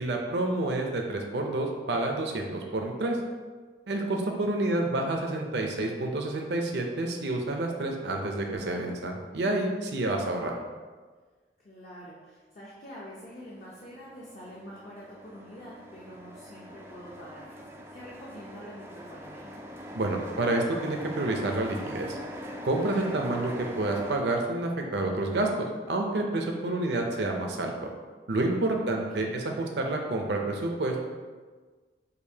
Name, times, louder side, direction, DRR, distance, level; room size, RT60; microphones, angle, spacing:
voice 1, 0.0-3.2 3.9-10.6 19.9-22.2 22.6-27.7 28.3-31.0, right 2 dB, 65° right, 2 dB, 0.6 m, -29 dB
voice 2, 4.6-5.1 11.6-19.5 26.6-27.1 28.8-29.4, equal, 40° left, -6 dB, 0.7 m, -46 dB
sound 1, 13.3-24.2, equal, 15° right, 0.3 m, -42 dB
6.6 x 2.6 x 2.8 m, 1.4 s
head